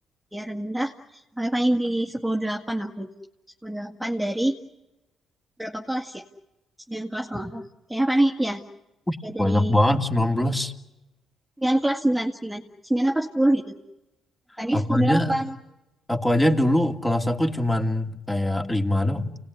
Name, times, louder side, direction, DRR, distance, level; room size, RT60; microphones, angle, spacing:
voice 1, 0.3-3.1 3.6-4.5 5.6-6.2 6.9-8.6 9.2-9.8 11.6-12.6 12.9-13.8 14.6-15.5, right 1 dB, 5° right, 1 dB, 1.9 m, -25 dB
voice 2, 9.1-10.7 14.7-15.4 16.1-19.4, left 1 dB, 10° left, 4 dB, 2.7 m, -23 dB
29.5 x 19.0 x 9.7 m, 0.98 s
cardioid pair, 90°, 0 cm